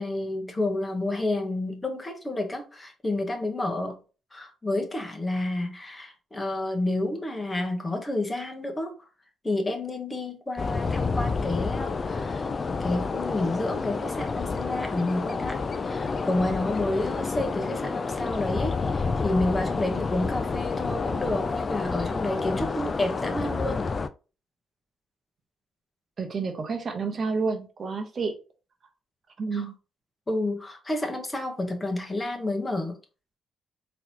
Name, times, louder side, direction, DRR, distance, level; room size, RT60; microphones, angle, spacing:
voice 1, 0.0-4.0 4.3-9.0 9.4-12.5 12.8-23.9 29.5-29.7 30.3-33.0, left 2 dB, 20° left, 1.1 m, -30 dB
sound 1, 10.6-24.1, left 4 dB, 35° left, 0.3 m, -29 dB
voice 2, 26.2-28.3 29.4-29.7, right 4 dB, 45° right, 0.8 m, -29 dB
3.8 x 2.9 x 2.8 m
cardioid pair, 90°, 0 cm